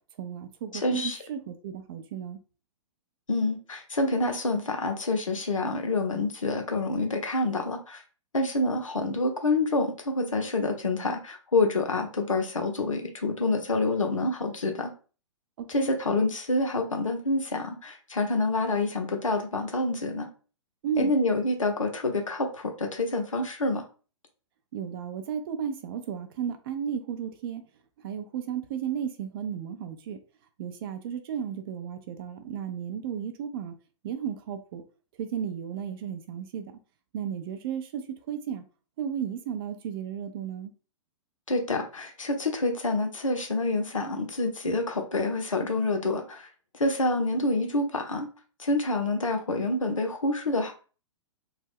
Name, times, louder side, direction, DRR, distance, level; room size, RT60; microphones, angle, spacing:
voice 1, 0.2-2.4 15.6-15.9 20.8-21.1 24.7-27.7 28.0-30.2 30.6-33.7 34.0-34.8 35.2-36.8 37.1-38.6 39.0-40.7, right 8 dB, 45° right, 0.4 m, -34 dB
voice 2, 0.8-1.2 3.3-8.0 8.3-14.9 15.7-20.3 21.0-23.9 41.5-46.5 46.7-48.3 48.6-50.7, left 2 dB, 90° left, 0.7 m, -27 dB
2.3 x 2.0 x 3.4 m
figure-of-eight pair, 115°, 16 cm